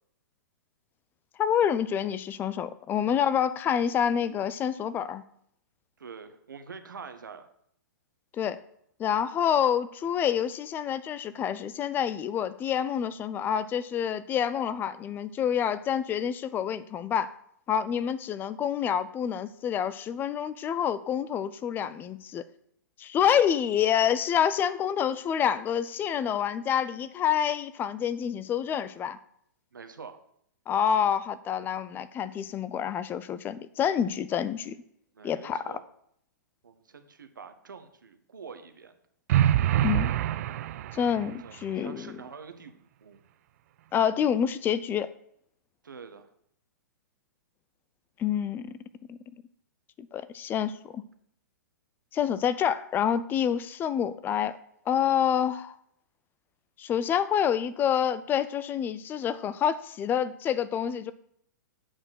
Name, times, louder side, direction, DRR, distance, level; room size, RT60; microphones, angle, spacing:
voice 1, 1.4-5.2 8.4-8.6 9.0-17.3 17.7-22.4 23.0-29.2 30.7-34.8 35.2-35.6 39.8-40.1 40.9-42.2 43.9-45.1 48.2-48.7 49.1-49.2 50.0-51.0 52.1-54.5 54.9-55.7 56.8-61.1, left 8 dB, 20° left, 15 dB, 0.4 m, -27 dB
voice 2, 6.0-7.5 29.7-30.2 35.1-35.8 36.6-38.9 40.9-43.2 45.8-46.3, right 5 dB, 85° right, 8 dB, 0.9 m, -46 dB
sound 1, 39.3-41.3, right 12 dB, 50° right, 0.4 m, -25 dB
7.7 x 4.3 x 6.2 m, 0.70 s
hypercardioid pair, 120°, 10 cm